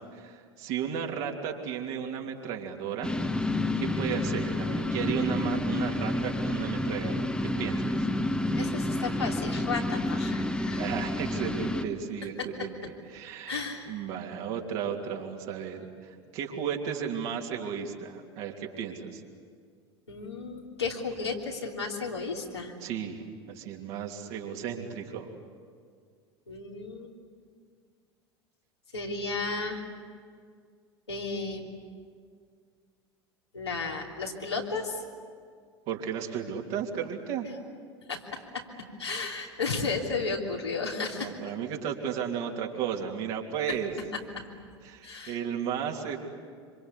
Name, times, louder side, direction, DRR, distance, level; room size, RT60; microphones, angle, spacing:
voice 1, 0.1-3.1 3.8-7.9 10.7-19.2 22.8-25.3 35.9-37.5 41.1-43.9 44.8-46.2, right 8 dB, 50° right, 1 dB, 3.2 m, -34 dB
sound 1, 3.0-11.8, left 1 dB, 5° left, 1.6 m, -29 dB
voice 2, 8.6-10.8 12.6-12.7 13.5-14.0 20.1-22.7 26.5-27.1 28.9-29.9 31.1-31.7 33.5-35.0 38.1-38.6 39.0-41.3 44.3-44.4 45.0-45.4, left 4 dB, 80° left, -1 dB, 3.3 m, -33 dB
26.0 x 26.0 x 8.3 m, 2.1 s
figure-of-eight pair, 80°, 14 cm